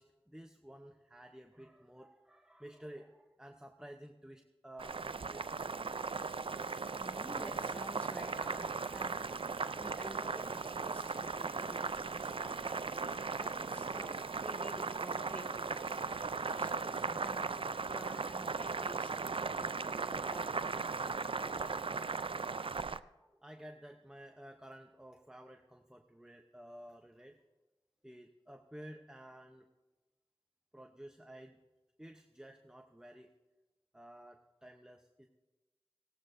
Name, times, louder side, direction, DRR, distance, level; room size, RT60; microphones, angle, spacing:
voice 1, 0.0-6.2 22.8-27.4 28.0-29.7 30.7-31.6 32.0-33.3 33.9-35.3, right 1 dB, 5° right, 4 dB, 0.8 m, -53 dB
Boiling, 4.8-23.0, right 4 dB, 65° right, 0.4 m, -37 dB
Domestic sounds home sounds, 5.9-16.9, left 1 dB, 45° left, 4.7 m, -63 dB
voice 2, 7.0-9.4 9.7-12.9 13.4-16.0 16.3-20.7, equal, 15° left, -1 dB, 3.7 m, -51 dB
19.0 x 16.5 x 2.6 m, 1.1 s
wide cardioid pair, 55°, 10 cm